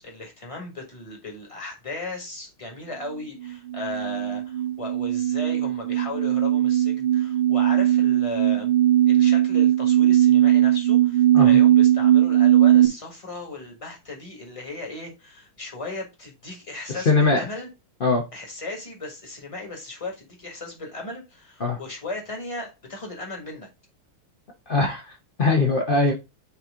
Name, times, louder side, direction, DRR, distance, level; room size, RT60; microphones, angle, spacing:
voice 1, 0.0-8.7 9.1-17.7 18.3-23.7, left 2 dB, 15° left, 1.4 m, -36 dB
sound 1, 3.4-12.9, right 12 dB, 35° right, 1.0 m, -19 dB
voice 2, 16.9-17.4 18.0-18.2 21.6-21.8 24.7-25.0 25.4-26.1, left 3 dB, 80° left, 0.4 m, -21 dB
8.9 x 3.0 x 3.6 m
omnidirectional pair, 2.3 m